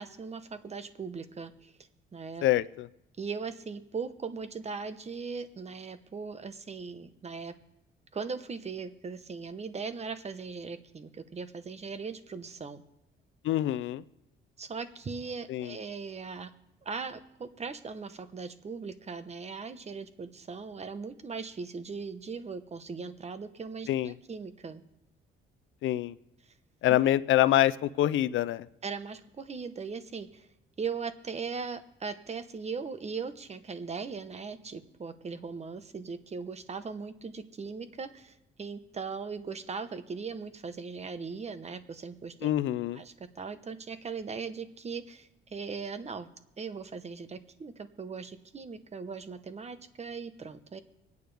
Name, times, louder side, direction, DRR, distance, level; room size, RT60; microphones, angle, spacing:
voice 1, 0.0-1.7 2.1-2.5 3.2-7.5 8.1-12.8 14.6-16.5 16.8-24.8 28.8-30.5 30.8-42.5 42.9-46.3 46.6-50.8, right 5 dB, 35° right, 11 dB, 1.1 m, -39 dB
voice 2, 2.4-2.9 13.4-14.0 15.5-15.7 23.9-24.1 25.8-26.1 26.8-28.7 42.4-43.0, left 13 dB, 75° left, 17 dB, 0.5 m, -26 dB
25.0 x 9.4 x 3.5 m, 0.86 s
cardioid pair, 90°, 20 cm